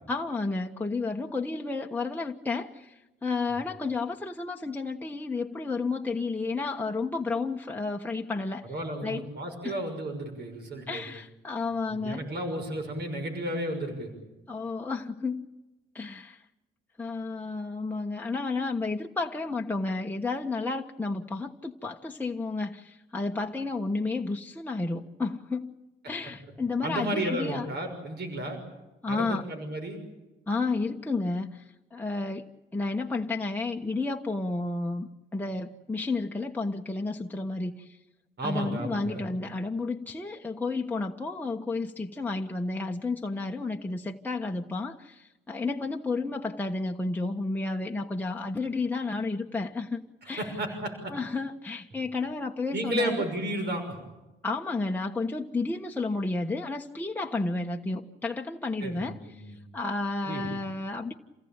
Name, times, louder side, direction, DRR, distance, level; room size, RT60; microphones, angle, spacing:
voice 1, 0.1-8.7 9.0-9.3 9.6-9.8 10.9-12.2 14.5-15.5 15.9-16.4 17.0-25.7 26.1-27.7 29.0-29.5 30.5-32.5 32.7-38.0 38.4-50.5 51.1-53.3 54.4-59.4 59.7-61.1, left 3 dB, 10° left, 1 dB, 1.2 m, -31 dB
voice 2, 8.7-11.0 11.9-14.1 26.8-28.6 29.1-30.0 38.4-39.2 50.2-51.1 52.7-53.8 58.8-59.6 60.3-60.5, right 1 dB, 55° right, 5 dB, 6.1 m, -33 dB
28.5 x 17.0 x 8.9 m, 1.1 s
cardioid pair, 90°, 20 cm